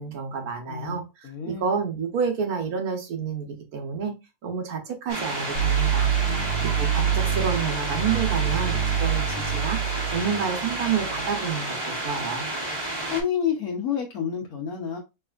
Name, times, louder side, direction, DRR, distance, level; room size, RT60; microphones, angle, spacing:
voice 1, 0.0-4.1 4.4-9.8 10.1-11.8 12.0-12.5, right 6 dB, 90° right, 4 dB, 1.5 m, -29 dB
voice 2, 0.7-1.7 6.3-7.0 13.1-15.0, left 8 dB, 80° left, -2 dB, 1.4 m, -30 dB
sound 1, 5.1-13.2, right 1 dB, 20° right, 1.1 m, -31 dB
sound 2, 5.5-11.5, right 9 dB, 65° right, 1.2 m, -26 dB
4.7 x 3.5 x 2.4 m, 0.24 s
omnidirectional pair, 1.5 m